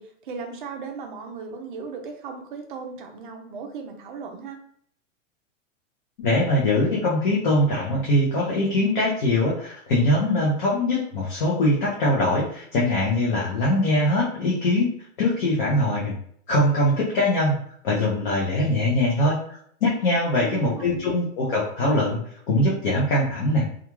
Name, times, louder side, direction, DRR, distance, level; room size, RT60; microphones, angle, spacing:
voice 1, 0.0-4.6 20.3-21.1, right 5 dB, 40° right, 4 dB, 0.4 m, -37 dB
voice 2, 6.2-14.9 15.2-16.1 16.5-17.6 17.8-22.2 22.5-23.7, left 1 dB, 40° left, -5 dB, 0.6 m, -22 dB
2.3 x 2.3 x 3.0 m, 0.64 s
supercardioid pair, 175°, 38 cm